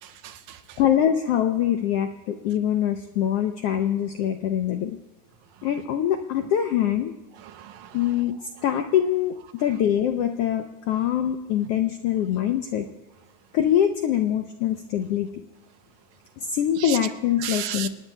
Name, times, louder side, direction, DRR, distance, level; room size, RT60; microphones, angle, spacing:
voice 1, 0.0-0.8 7.4-8.0 16.8-17.0 17.4-17.9, right 11 dB, 75° right, 2.0 m, -34 dB
voice 2, 0.8-5.0 5.6-7.1 7.9-8.3 8.6-12.8 13.5-15.3 16.4-17.9, left 10 dB, 85° left, 1.3 m, -24 dB
26.0 x 18.5 x 2.2 m
omnidirectional pair, 3.4 m